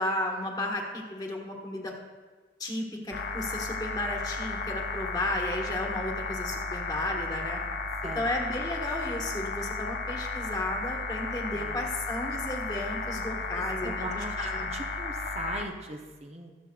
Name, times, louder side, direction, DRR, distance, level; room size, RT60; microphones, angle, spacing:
voice 1, 0.0-1.9 2.6-7.6 8.1-14.7, left 1 dB, 20° left, 0 dB, 1.3 m, -33 dB
sound 1, 3.1-15.6, left 3 dB, 60° left, 0.7 m, -34 dB
voice 2, 11.5-11.8 13.1-13.5 13.8-16.5, right 2 dB, 35° right, 2 dB, 0.7 m, -40 dB
21.0 x 7.4 x 2.3 m, 1.4 s
head